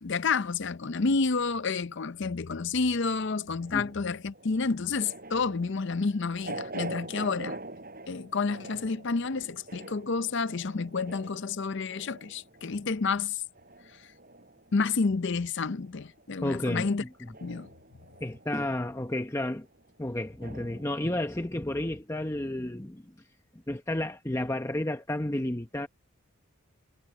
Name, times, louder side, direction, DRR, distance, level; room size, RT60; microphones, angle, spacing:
voice 1, 0.0-7.6 8.1-13.4 14.7-17.0 17.4-17.7, left 4 dB, 50° left, 0.6 m, -29 dB
sound 1, 2.8-15.5 15.8-21.0, right 2 dB, 40° right, 5.1 m, -45 dB
voice 2, 16.4-16.9 18.2-19.7 20.0-23.1 23.7-25.9, left 1 dB, 15° left, 0.8 m, -31 dB
head